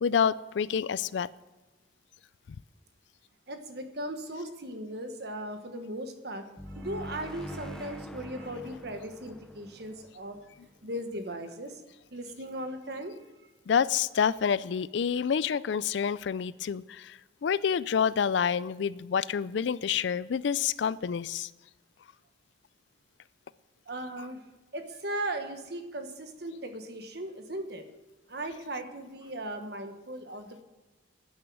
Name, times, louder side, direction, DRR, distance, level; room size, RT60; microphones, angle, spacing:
voice 1, 0.0-1.3 13.7-21.5, left 7 dB, 70° left, 19 dB, 0.4 m, -28 dB
voice 2, 3.5-10.4 10.8-11.8 12.1-13.2 23.9-24.4 24.7-27.8 28.3-30.6, right 1 dB, 55° right, 7 dB, 1.3 m, -38 dB
sound 1, 6.6-11.2, equal, 5° left, 0.5 m, -44 dB
11.0 x 9.4 x 6.2 m, 1.1 s
head